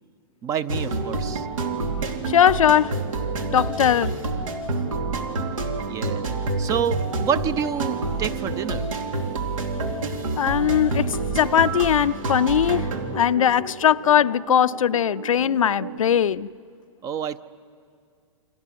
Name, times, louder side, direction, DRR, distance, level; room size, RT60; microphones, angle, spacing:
voice 1, 0.4-1.5 5.9-6.2 6.6-8.9 17.0-17.4, right 8 dB, 20° right, 0.6 m, -28 dB
sound 1, 0.7-16.0, right 3 dB, 80° right, 2.9 m, -28 dB
voice 2, 2.3-3.0 3.5-4.1 10.4-16.5, left 9 dB, 85° left, 0.6 m, -20 dB
29.5 x 24.5 x 7.6 m
hypercardioid pair, 140°, 17 cm